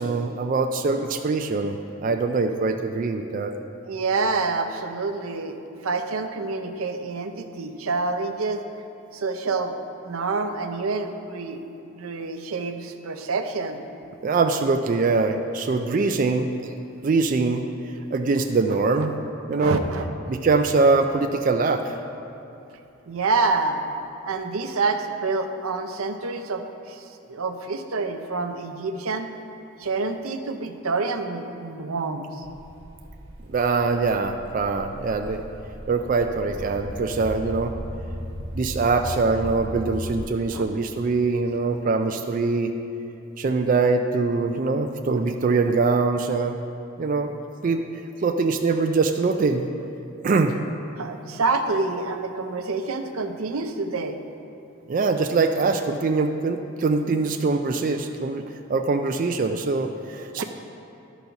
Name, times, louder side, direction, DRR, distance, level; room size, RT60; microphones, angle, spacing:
voice 1, 0.0-1.8 2.0-3.5 14.2-16.7 17.0-17.6 18.1-19.1 19.5-19.8 20.3-22.0 33.5-35.4 35.9-37.7 38.5-42.7 43.4-46.6 47.0-47.3 47.6-49.7 50.2-50.5 54.9-58.4 58.7-60.4, right 4 dB, 40° right, 5 dB, 0.3 m, -23 dB
voice 2, 3.8-5.6 5.8-8.6 9.1-9.8 10.0-11.6 11.9-13.8 19.0-19.1 19.6-20.0 23.1-23.8 24.2-29.3 29.8-32.4 40.5-40.6 51.0-54.2 60.4-60.5, right 3 dB, 90° right, 6 dB, 0.6 m, -27 dB
sound 1, 32.4-40.3, equal, 60° right, 1.5 m, -37 dB
11.5 x 4.0 x 5.8 m, 2.8 s
head